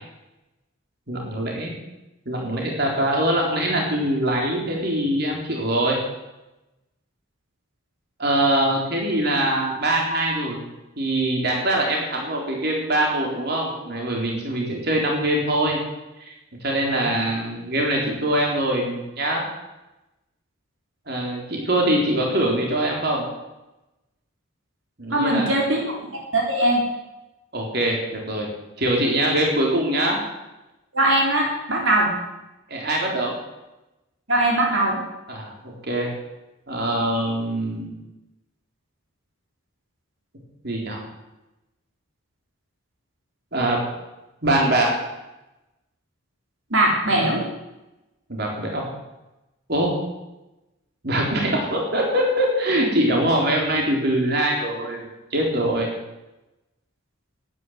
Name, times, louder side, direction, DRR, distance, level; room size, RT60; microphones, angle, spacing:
voice 1, 1.1-1.7 2.3-6.0 8.2-10.6 11.0-15.8 16.6-19.4 21.1-23.3 25.0-25.5 27.5-28.5 28.8-30.2 32.7-33.3 35.3-36.1 36.7-37.9 40.6-41.0 43.5-43.8 44.4-44.9 48.3-48.9 49.7-49.9 51.0-55.9, right 1 dB, 50° right, -1 dB, 3.9 m, -23 dB
voice 2, 25.1-26.8 30.9-32.1 34.3-35.0 46.7-47.4, right 1 dB, 70° right, -1 dB, 3.8 m, -21 dB
13.0 x 9.9 x 9.4 m, 0.99 s
head